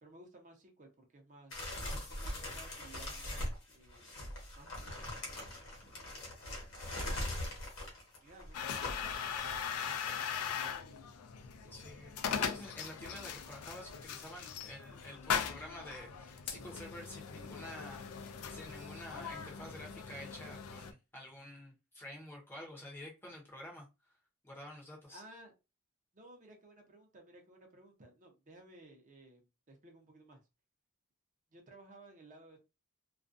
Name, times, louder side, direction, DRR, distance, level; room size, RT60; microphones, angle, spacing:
voice 1, 0.0-4.3 4.6-5.0 8.2-8.6 8.8-10.9 11.6-11.8 25.1-25.5 26.1-30.4 31.5-32.6, right 1 dB, 35° right, 0.6 m, -57 dB
sound 1, 1.5-9.7, left 1 dB, 60° left, 1.0 m, -41 dB
sound 2, 8.5-20.9, left 7 dB, 85° left, 0.4 m, -40 dB
voice 2, 11.7-23.9 24.4-25.2, left 1 dB, 10° left, 0.6 m, -49 dB
2.4 x 2.1 x 2.5 m
head